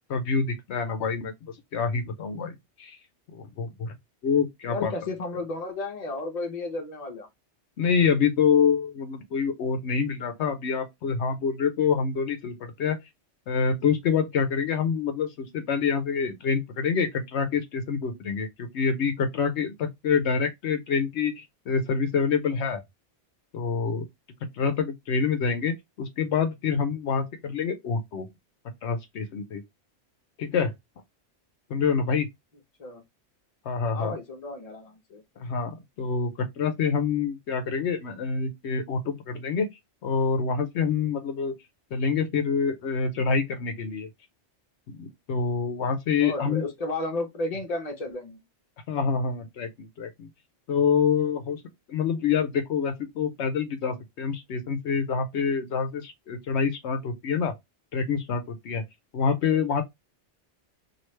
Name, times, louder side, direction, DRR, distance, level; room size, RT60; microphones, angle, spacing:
voice 1, 0.1-1.3 1.7-2.5 2.8-3.0 3.3-3.9 4.2-4.9 7.8-13.0 13.5-22.8 23.5-24.0 24.5-28.3 28.8-29.6 30.4-30.7 31.7-32.3 33.7-34.2 35.4-36.3 36.6-39.7 40.0-41.5 41.9-44.1 45.0-46.6 48.9-50.3 50.7-51.6 51.9-57.5 57.9-58.8 59.1-59.8, left 6 dB, 75° left, 0.9 m, -26 dB
voice 2, 4.7-7.3 32.8-33.0 33.9-35.2 46.2-48.4, left 2 dB, 35° left, 0.9 m, -33 dB
3.1 x 2.7 x 3.1 m
omnidirectional pair, 1.2 m